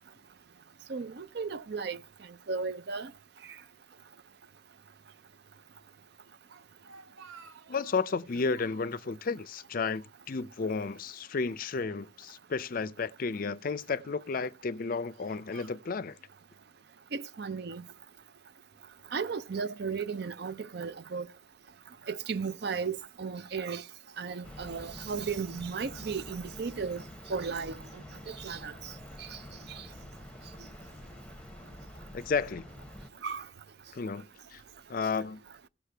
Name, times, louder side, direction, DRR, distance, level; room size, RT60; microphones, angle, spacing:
voice 1, 0.9-2.0 2.5-3.1 17.1-17.8 19.1-21.3 22.1-23.8 24.2-27.0 27.3-27.8 28.3-28.7 33.2-33.4, right 5 dB, 55° right, 0.5 m, -35 dB
Speech, 6.5-8.2 8.5-9.1 9.5-10.6 10.8-11.0 11.8-12.8 13.5-13.9 14.6-16.3, right 5 dB, 90° right, 1.0 m, -56 dB
voice 2, 7.7-16.2 32.1-32.7 33.9-34.6 34.9-35.4, left 4 dB, 45° left, 0.4 m, -32 dB
sound 1, 24.4-33.1, left 1 dB, 5° left, 0.8 m, -47 dB
16.5 x 6.6 x 3.3 m
head